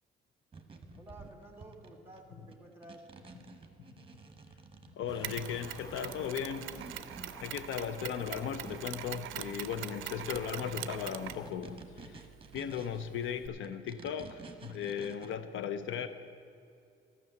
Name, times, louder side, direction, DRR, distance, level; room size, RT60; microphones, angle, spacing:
sound 1, 0.5-9.0 9.3-9.9 10.1-13.3 13.6-15.3, right 5 dB, 25° right, 1.0 m, -52 dB
voice 1, 1.0-3.1, right 1 dB, 10° right, 3 dB, 1.9 m, -52 dB
voice 2, 5.0-6.7 7.4-12.2 12.5-16.1, left 8 dB, 80° left, 11 dB, 0.7 m, -37 dB
sound 2, 5.1-11.5, left 4 dB, 20° left, 0.4 m, -52 dB
Mechanisms, 5.2-13.5, right 14 dB, 85° right, 0.4 m, -44 dB
12.5 x 6.1 x 7.8 m, 2.4 s
cardioid pair, 90°, 20 cm